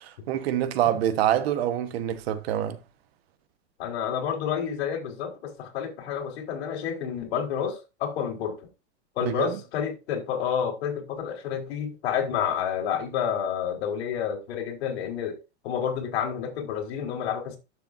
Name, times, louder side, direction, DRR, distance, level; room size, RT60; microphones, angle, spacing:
voice 1, 0.0-2.8 9.2-9.5, right 11 dB, 60° right, 1.2 m, -26 dB
voice 2, 3.8-8.7 9.2-17.6, left 8 dB, 65° left, 3.8 m, -29 dB
12.0 x 6.9 x 2.6 m
supercardioid pair, 160°, 34 cm